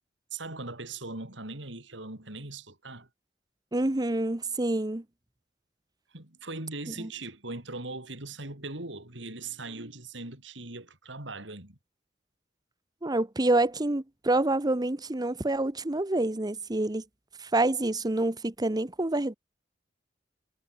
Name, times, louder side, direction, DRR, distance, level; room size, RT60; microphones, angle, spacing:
voice 1, 0.3-3.1 6.1-11.8, right 3 dB, 75° right, 4.8 m, -40 dB
voice 2, 3.7-5.0 6.9-7.1 13.0-17.0 17.4-19.3, right 2 dB, 20° right, 0.9 m, -27 dB
head